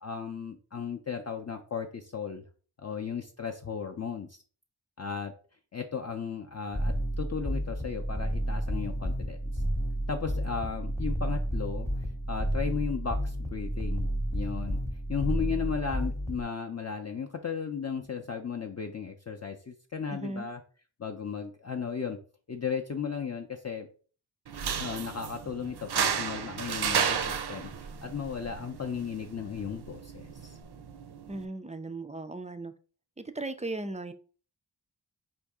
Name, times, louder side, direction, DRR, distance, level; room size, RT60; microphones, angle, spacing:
voice 1, 0.0-2.5 2.8-4.4 5.0-5.3 5.7-9.6 10.1-11.9 12.3-14.8 15.1-20.6 21.0-22.2 22.5-23.9 24.8-30.6, left 6 dB, 40° left, 3 dB, 0.5 m, -35 dB
sound 1, 6.7-16.4, equal, 5° left, 0.7 m, -31 dB
voice 2, 20.1-20.5 31.3-32.7 33.2-34.1, right 2 dB, 20° right, 10 dB, 0.3 m, -37 dB
sound 2, 24.5-31.5, right 7 dB, 65° right, 0.5 m, -33 dB
4.6 x 2.6 x 3.5 m, 0.40 s
wide cardioid pair, 55°, 42 cm